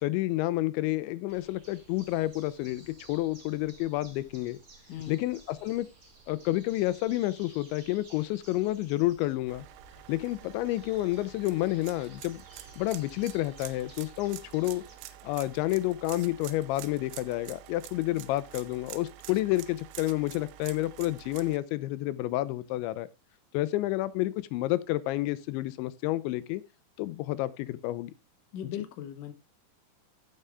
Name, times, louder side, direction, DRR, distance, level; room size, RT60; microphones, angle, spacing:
voice 1, 0.0-4.6 5.1-5.9 6.3-9.7 10.1-12.4 12.8-14.8 15.2-23.1 23.5-26.6 27.0-28.1, left 17 dB, 85° left, 3.0 m, -30 dB
sound 1, 1.3-14.9, right 2 dB, 70° right, 0.7 m, -55 dB
voice 2, 4.9-5.3 28.5-29.3, left 10 dB, 65° left, 2.2 m, -38 dB
sound 2, 9.5-21.6, right 13 dB, 90° right, 3.0 m, -47 dB
15.0 x 5.6 x 3.4 m
omnidirectional pair, 5.2 m